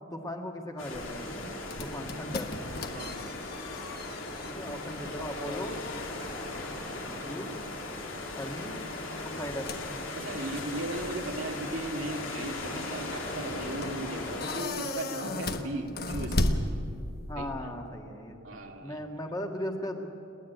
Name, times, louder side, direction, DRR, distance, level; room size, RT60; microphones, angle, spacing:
voice 1, 0.1-1.5 1.8-2.5 4.4-5.7 7.0-7.5 8.3-8.7 9.2-9.7 17.3-18.4 18.8-20.1, left 1 dB, 20° left, 2 dB, 1.7 m, -37 dB
sound 1, 0.8-14.6, left 2 dB, 90° left, 3.3 m, -38 dB
sound 2, 0.9-17.3, left 1 dB, 50° left, 1.3 m, -37 dB
voice 2, 2.9-3.2 5.7-5.8 10.1-16.4 17.3-17.7 18.4-19.0, right 1 dB, 85° right, 2 dB, 2.3 m, -37 dB
29.5 x 10.0 x 9.2 m, 2.6 s
head